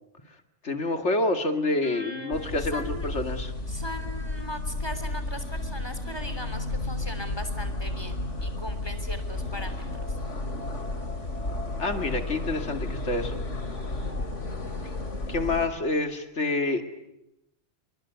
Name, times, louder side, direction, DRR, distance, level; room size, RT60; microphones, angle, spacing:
voice 1, 0.6-3.5 11.8-13.4 15.3-16.8, left 2 dB, 70° left, 7 dB, 2.6 m, -27 dB
voice 2, 1.8-3.1 3.7-10.2, equal, 20° left, 8 dB, 3.4 m, -39 dB
sound 1, 2.3-15.7, left 2 dB, 90° left, 3.3 m, -32 dB
26.5 x 24.0 x 9.4 m, 0.90 s
omnidirectional pair, 1.2 m